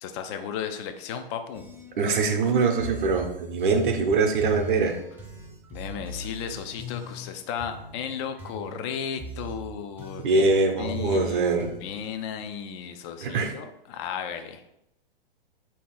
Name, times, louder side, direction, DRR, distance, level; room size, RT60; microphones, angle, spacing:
voice 1, 0.0-1.6 5.7-10.5 10.8-14.6, left 8 dB, 30° left, 7 dB, 0.4 m, -35 dB
sound 1, 1.5-12.0, left 1 dB, 5° right, 0.6 m, -40 dB
voice 2, 2.0-5.0 10.2-11.7 13.2-13.5, right 4 dB, 60° right, 4 dB, 0.8 m, -23 dB
4.0 x 2.8 x 3.7 m, 0.81 s
figure-of-eight pair, 110°, 29 cm